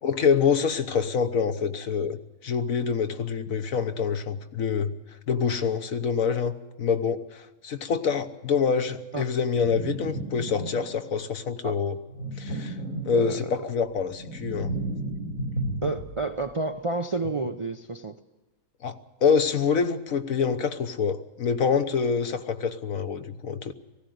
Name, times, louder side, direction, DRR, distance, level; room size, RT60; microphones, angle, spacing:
voice 1, 0.0-4.9 5.3-6.5 6.8-12.0 12.4-12.8 13.0-14.7 18.8-23.7, left 6 dB, 65° left, 8 dB, 1.4 m, -26 dB
sound 1, 9.5-11.1 12.1-13.6 13.9-16.3, right 1 dB, 85° left, 4.5 m, -33 dB
voice 2, 13.1-13.5 15.8-18.2, right 3 dB, 40° right, 5 dB, 0.4 m, -30 dB
18.5 x 16.0 x 9.3 m, 1.1 s
omnidirectional pair, 1.5 m